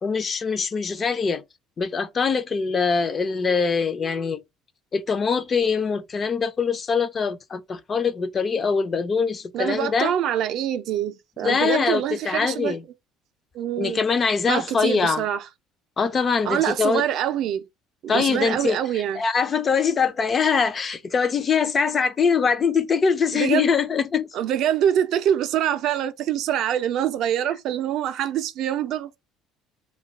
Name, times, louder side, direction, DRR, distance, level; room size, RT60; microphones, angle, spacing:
voice 1, 0.0-1.4 1.8-4.4 4.9-10.1 11.4-12.8 13.8-15.2 16.0-17.0 18.1-18.8 19.2-24.3, left 5 dB, 30° left, 0.3 m, -23 dB
voice 2, 9.5-12.7 13.5-14.0 14.5-15.4 16.4-17.6 18.0-19.2 23.3-23.7 24.3-29.2, right 10 dB, 55° right, 0.3 m, -25 dB
2.3 x 2.2 x 3.9 m
cardioid pair, 140°, 0 cm